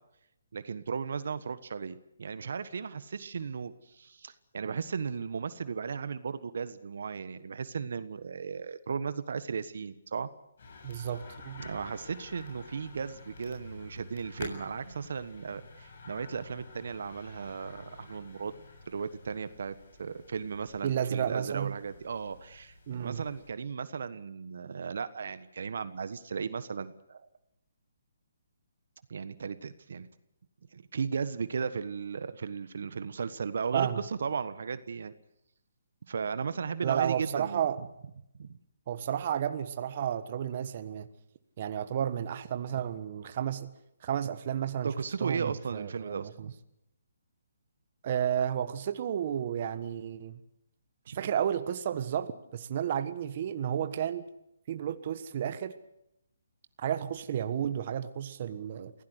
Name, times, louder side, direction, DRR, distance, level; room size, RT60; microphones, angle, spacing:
voice 1, 0.5-10.3 11.6-18.5 18.9-27.2 29.1-30.1 30.7-35.1 36.1-37.9 38.4-38.6 44.8-46.5 51.1-51.2, right 6 dB, 65° right, 13 dB, 1.3 m, -36 dB
sound 1, 10.6-23.5, left 3 dB, 55° left, 7.3 m, -49 dB
voice 2, 10.8-11.6 20.8-21.7 22.9-23.2 33.7-34.0 36.8-37.8 38.9-41.1 41.6-43.7 44.0-44.9 45.2-46.5 48.0-50.4 51.1-54.3 54.7-55.7 56.8-58.9, right 9 dB, 40° right, 11 dB, 1.4 m, -32 dB
24.0 x 16.5 x 8.1 m, 0.82 s
hypercardioid pair, 160°, 0 cm